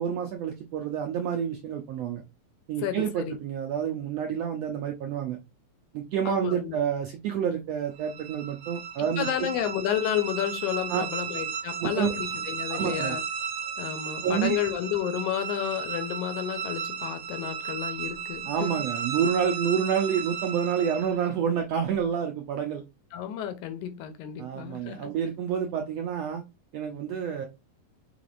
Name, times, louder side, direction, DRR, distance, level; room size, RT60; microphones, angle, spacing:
voice 1, 0.0-2.2 2.7-5.4 5.9-9.5 10.9-11.0 11.8-12.1 12.7-13.2 14.2-14.6 18.5-22.8 24.4-26.4 26.7-27.5, right 8 dB, 80° right, 1.5 m, -28 dB
voice 2, 2.8-3.3 6.3-6.8 9.2-13.2 13.8-18.7 23.1-25.2, left 10 dB, 80° left, 2.0 m, -31 dB
sound 1, 8.0-21.4, right 7 dB, 65° right, 1.6 m, -35 dB
5.9 x 3.3 x 2.5 m
omnidirectional pair, 3.6 m